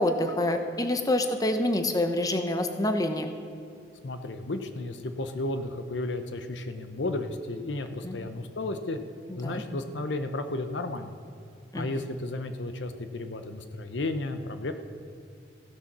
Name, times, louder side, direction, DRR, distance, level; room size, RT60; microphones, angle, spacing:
voice 1, 0.0-3.3 8.0-8.2 9.3-9.6 11.7-11.9, left 1 dB, 20° left, 6 dB, 0.7 m, -27 dB
voice 2, 4.0-9.0 9.4-11.2 11.7-14.7, left 2 dB, 85° left, 8 dB, 0.8 m, -33 dB
16.0 x 7.1 x 6.0 m, 2.5 s
head